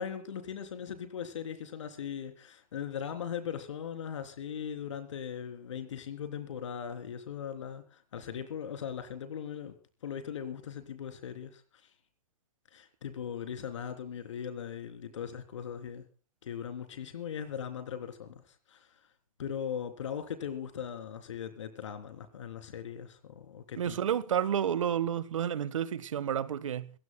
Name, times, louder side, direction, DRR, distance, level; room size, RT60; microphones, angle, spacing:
voice 1, 0.0-9.8 10.0-11.9 12.7-16.0 16.4-18.9 19.4-24.0, left 8 dB, 60° left, 3.5 m, -39 dB
voice 2, 23.8-26.9, right 9 dB, 65° right, 1.5 m, -30 dB
27.0 x 15.5 x 2.3 m
hypercardioid pair, 170°, 18 cm